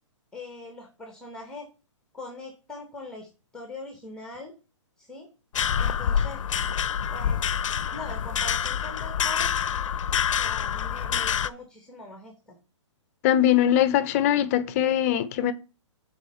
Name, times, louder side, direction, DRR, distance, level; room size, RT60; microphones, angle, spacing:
voice 1, 0.3-1.7 2.1-4.5 5.0-5.3 5.8-6.4 7.1-7.4 7.9-9.5 10.3-12.6, left 2 dB, 5° left, 0.8 m, -41 dB
sound 1, 5.5-11.5, left 8 dB, 80° left, 0.4 m, -27 dB
voice 2, 13.2-15.5, left 11 dB, 30° left, 0.5 m, -21 dB
6.9 x 4.2 x 4.2 m
hypercardioid pair, 150°, 16 cm